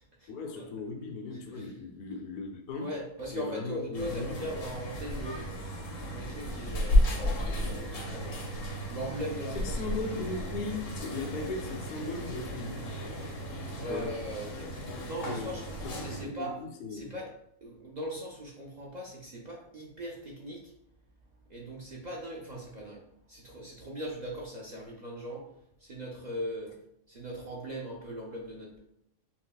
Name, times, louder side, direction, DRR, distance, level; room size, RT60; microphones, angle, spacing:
voice 1, 0.3-2.9 3.3-4.4 9.5-12.7 13.9-14.1 14.9-15.5 15.8-16.5 16.8-17.2, left 3 dB, 50° left, 1 dB, 0.6 m, -37 dB
voice 2, 1.3-1.7 2.7-5.5 6.0-8.4 8.9-9.9 13.7-16.6 16.9-17.3 17.6-20.7 21.5-25.5 25.8-26.7 27.1-28.8, right 1 dB, 50° right, -3 dB, 0.5 m, -40 dB
sound 1, 3.9-16.2, left 1 dB, 85° left, 1.2 m, -33 dB
5.6 x 2.0 x 2.2 m, 0.76 s
omnidirectional pair, 1.3 m